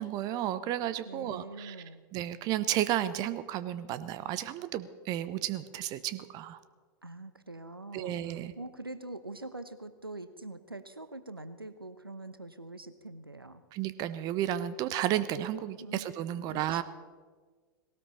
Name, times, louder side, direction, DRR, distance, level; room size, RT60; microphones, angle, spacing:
voice 1, 0.0-1.8 2.1-6.6 7.9-8.5 13.7-16.8, right 12 dB, 35° right, 14 dB, 0.8 m, -32 dB
voice 2, 1.0-2.0 7.0-13.6 15.8-16.1 16.4-16.8, right 2 dB, 90° right, 12 dB, 0.9 m, -44 dB
19.0 x 18.0 x 4.2 m, 1.5 s
figure-of-eight pair, 95°, 12 cm